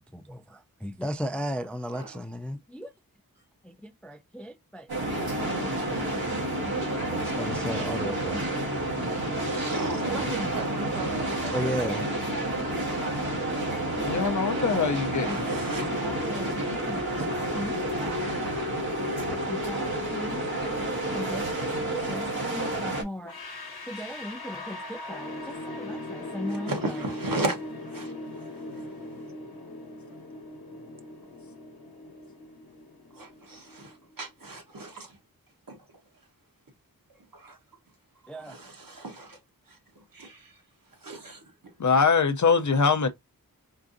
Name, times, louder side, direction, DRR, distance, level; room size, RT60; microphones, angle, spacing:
voice 1, 0.1-2.9 3.6-6.2 6.7-8.5 10.1-12.1 12.7-12.8 15.2-17.1 17.6-18.5 19.3-23.3 23.9-27.1 38.3-38.6, equal, 5° left, 0.3 m, -37 dB
sound 1, 4.9-23.0, right 1 dB, 90° right, 1.4 m, -30 dB
voice 2, 9.5-11.6 11.8-11.9 14.4-14.6 15.2-16.1 16.4-16.6 17.0-17.8 26.5-27.6 27.9-28.1 28.7-28.8 33.2-35.1 35.7-35.8 37.3-37.6 38.4-39.4 40.1-40.5 41.0-41.4, right 2 dB, 65° right, 1.1 m, -36 dB
voice 3, 14.0-15.4 41.8-43.1, left 5 dB, 55° left, 0.5 m, -23 dB
sound 2, 23.2-34.1, left 2 dB, 85° left, 0.9 m, -40 dB
4.6 x 2.5 x 2.5 m
wide cardioid pair, 60°, 36 cm